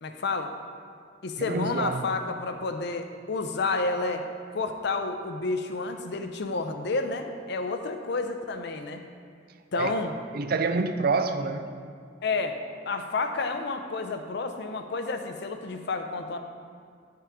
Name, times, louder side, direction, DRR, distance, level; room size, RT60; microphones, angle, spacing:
voice 1, 0.0-0.5 1.2-4.2 4.5-9.0 9.7-10.1 12.2-12.6 12.9-16.4, left 3 dB, 60° left, 6 dB, 0.6 m, -30 dB
voice 2, 1.4-2.0 9.8-9.9 10.3-11.7, right 4 dB, 50° right, 9 dB, 0.4 m, -27 dB
9.7 x 5.8 x 3.6 m, 2.2 s
head